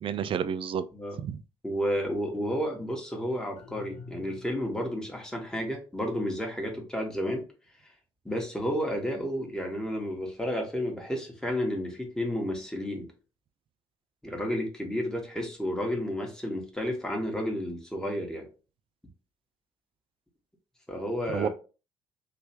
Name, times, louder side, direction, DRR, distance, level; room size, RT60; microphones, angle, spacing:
voice 1, 0.0-0.8 1.2-1.4 21.3-21.5, right 8 dB, 35° right, 0.4 m, -30 dB
voice 2, 1.6-7.4 8.2-13.1 14.2-18.5 20.9-21.5, equal, 5° left, 1.3 m, -31 dB
sound 1, 3.6-5.0, left 4 dB, 45° left, 0.8 m, -47 dB
3.3 x 2.9 x 2.9 m
figure-of-eight pair, 50°, 15 cm